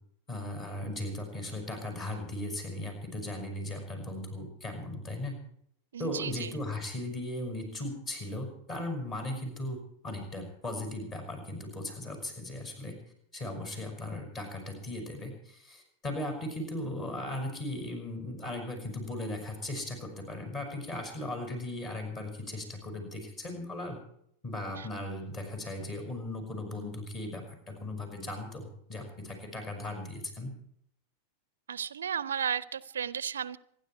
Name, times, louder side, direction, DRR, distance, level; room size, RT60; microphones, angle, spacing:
voice 1, 0.3-5.4 6.0-13.0 13.3-24.0 24.4-30.5, left 1 dB, 30° left, 4 dB, 6.1 m, -37 dB
voice 2, 5.9-6.5 24.8-24.9 31.7-33.6, right 8 dB, 65° right, 20 dB, 0.5 m, -34 dB
27.5 x 10.5 x 4.6 m, 0.70 s
figure-of-eight pair, 90°, 0 cm